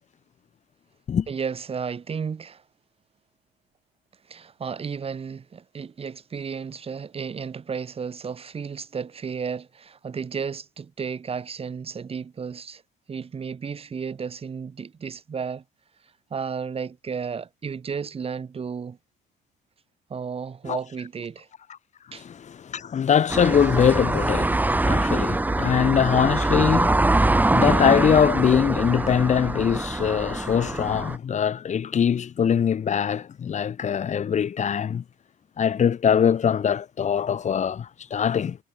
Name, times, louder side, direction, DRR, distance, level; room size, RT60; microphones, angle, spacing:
voice 1, 1.3-2.6 4.3-12.8 13.1-15.6 16.3-19.0 20.1-21.5 22.1-22.2, right 6 dB, 35° right, 7.8 m, -33 dB
voice 2, 22.1-35.0 35.6-38.6, left 8 dB, 45° left, 5.3 m, -22 dB
sound 1, 23.3-31.2, right 2 dB, 10° right, 1.6 m, -23 dB
cardioid pair, 110°, 17 cm